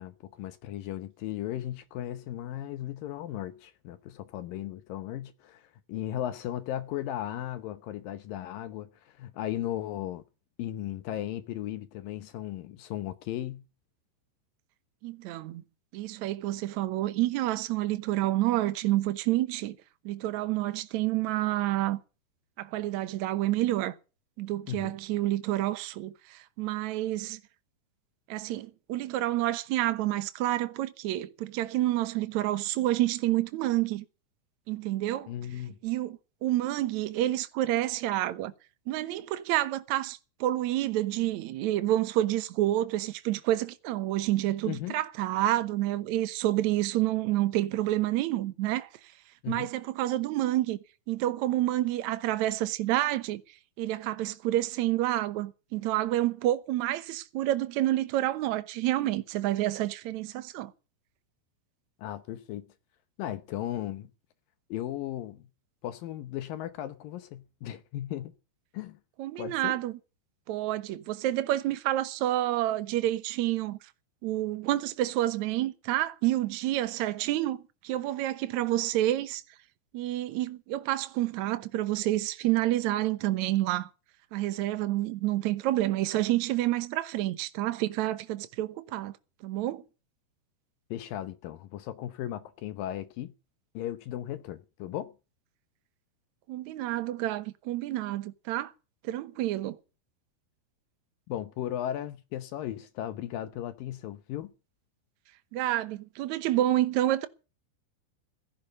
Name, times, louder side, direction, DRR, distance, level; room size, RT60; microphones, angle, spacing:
voice 1, 0.0-10.2 10.6-13.6 24.7-25.0 35.3-35.8 44.7-45.0 49.4-49.7 62.0-62.7 63.2-64.1 64.7-65.5 65.8-68.3 68.7-69.0 69.4-69.8 90.9-93.3 93.7-95.1 101.3-104.5, left 12 dB, 75° left, 2.2 m, -36 dB
voice 2, 15.0-15.6 15.9-19.8 20.0-22.0 22.6-23.9 24.4-27.4 28.3-34.0 34.7-35.3 35.8-38.5 38.9-48.9 49.5-50.8 51.1-53.4 53.8-60.7 69.2-69.9 70.5-73.8 74.2-79.4 79.9-83.9 84.3-89.1 89.4-89.8 96.5-98.7 99.0-99.8 105.5-107.3, right 14 dB, 90° right, 1.6 m, -29 dB
15.5 x 11.0 x 6.7 m
omnidirectional pair, 4.8 m